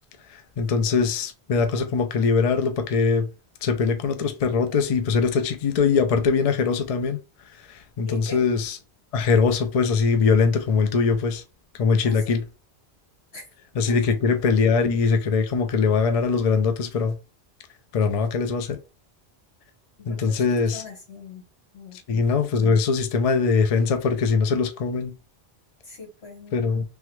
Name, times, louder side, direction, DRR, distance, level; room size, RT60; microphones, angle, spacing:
voice 1, 0.3-3.3 3.6-7.2 7.7-8.8 9.1-11.4 11.8-12.4 13.8-17.1 17.9-18.8 20.1-20.8 22.1-25.1 26.5-26.8, left 5 dB, 55° left, 0.4 m, -22 dB
voice 2, 8.0-8.4 12.0-12.4 13.3-13.4 13.9-14.0 20.0-21.4 21.7-22.0 25.8-26.6, left 3 dB, 75° left, 1.6 m, -41 dB
3.4 x 2.2 x 3.0 m
omnidirectional pair, 1.1 m